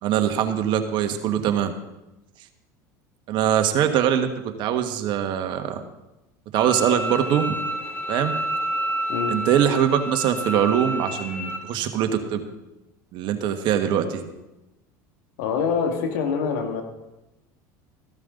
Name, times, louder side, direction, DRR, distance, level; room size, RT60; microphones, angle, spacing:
voice 1, 0.0-1.7 3.3-4.3 4.6-5.8 6.5-7.6 8.1-8.3 9.3-12.4 13.1-14.2, right 9 dB, 55° right, 7 dB, 1.6 m, -22 dB
Bowed string instrument, 6.5-11.6, equal, 20° left, 2.5 m, -29 dB
voice 2, 15.4-16.8, left 6 dB, 75° left, 4 dB, 2.1 m, -25 dB
15.0 x 12.5 x 3.9 m, 0.98 s
hypercardioid pair, 90°, 9 cm